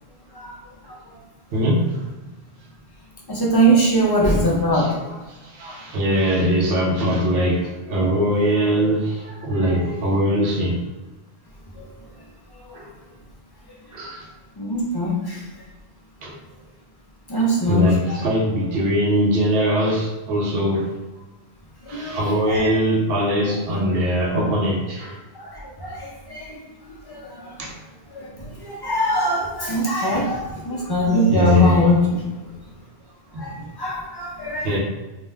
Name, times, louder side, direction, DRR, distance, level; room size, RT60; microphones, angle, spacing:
voice 1, 1.5-2.1 4.7-10.8 12.7-12.9 13.9-14.3 16.2-16.4 17.4-20.9 21.9-25.2 27.6-27.8 29.6-30.0 31.3-31.9 33.3-33.7 34.6-34.8, equal, 70° right, 0 dB, 0.8 m, -22 dB
voice 2, 3.3-4.9 11.8-11.9 14.6-15.4 17.3-18.2 21.9-22.2 22.5-22.8 25.4-26.6 26.9-27.5 28.1-32.3 33.4-34.8, equal, 40° left, -4 dB, 0.3 m, -22 dB
2.4 x 2.1 x 3.3 m, 1.1 s
omnidirectional pair, 1.1 m